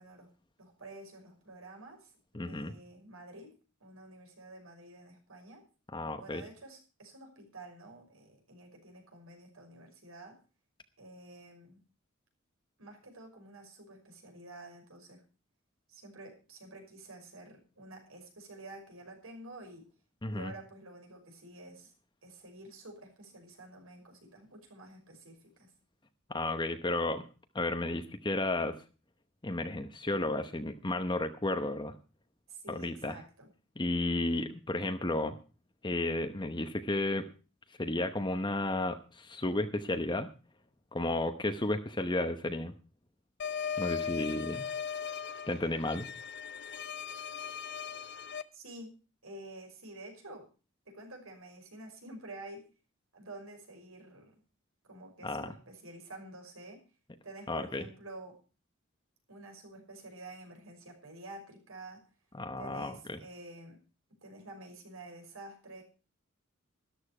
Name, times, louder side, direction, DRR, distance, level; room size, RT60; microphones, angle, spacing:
voice 1, 0.0-3.5 3.8-5.6 6.2-10.4 11.0-11.8 12.8-15.3 15.9-19.9 20.3-21.9 22.2-25.7 32.5-33.5 48.5-49.0 49.2-50.5 50.9-52.7 53.1-54.3 54.8-56.8 57.2-58.4 59.3-62.0 62.6-63.8 64.2-65.8, right 2 dB, 80° right, 3 dB, 5.8 m, -49 dB
voice 2, 2.3-2.7 5.9-6.4 20.2-20.5 26.3-27.2 27.5-28.8 29.4-31.9 32.7-33.2 33.8-35.4 35.8-37.3 37.8-40.3 40.9-42.7 43.8-44.7 45.5-46.1 55.2-55.5 57.5-57.8 62.3-63.2, left 2 dB, 20° left, 7 dB, 0.9 m, -33 dB
sound 1, 43.4-48.4, left 7 dB, 55° left, 0.8 m, -38 dB
13.5 x 12.0 x 4.8 m, 0.35 s
head